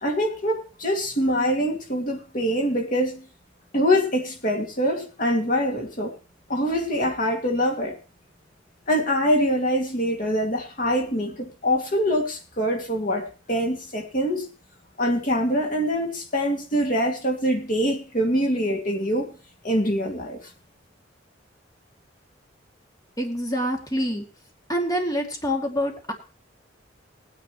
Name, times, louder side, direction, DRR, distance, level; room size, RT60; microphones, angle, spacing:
voice 1, 0.0-3.3 3.7-6.1 6.5-8.0 8.9-14.5 15.0-19.3 19.6-20.5, equal, 45° left, 2.2 m, -24 dB
voice 2, 23.2-24.3 24.7-26.1, equal, 20° left, 2.4 m, -26 dB
19.0 x 9.8 x 3.1 m
head